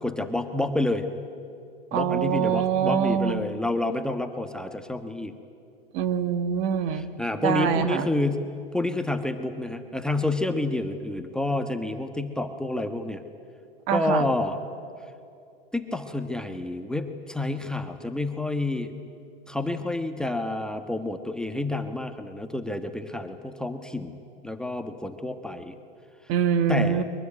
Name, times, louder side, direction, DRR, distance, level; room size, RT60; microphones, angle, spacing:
voice 1, 0.0-1.1 1.9-5.3 6.9-8.5 8.7-13.2 13.9-14.6 15.7-18.9 19.5-24.2 24.4-25.8 26.7-27.0, left 2 dB, ahead, 6 dB, 1.3 m, -29 dB
voice 2, 1.9-3.4 5.9-7.1 7.4-8.1 13.9-14.3 26.3-27.0, right 8 dB, 45° right, 12 dB, 1.5 m, -24 dB
22.5 x 21.5 x 9.9 m, 2.5 s
hypercardioid pair, 115°, 31 cm